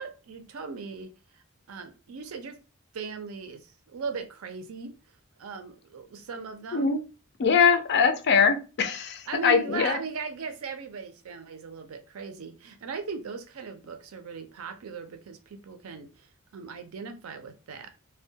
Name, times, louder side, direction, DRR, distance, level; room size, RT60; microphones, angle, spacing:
voice 1, 0.0-2.6 2.9-4.9 5.4-6.9 9.3-17.9, right 5 dB, 85° right, 0.5 m, -38 dB
voice 2, 7.4-10.0, left 6 dB, 50° left, 0.4 m, -22 dB
2.2 x 2.1 x 2.6 m
head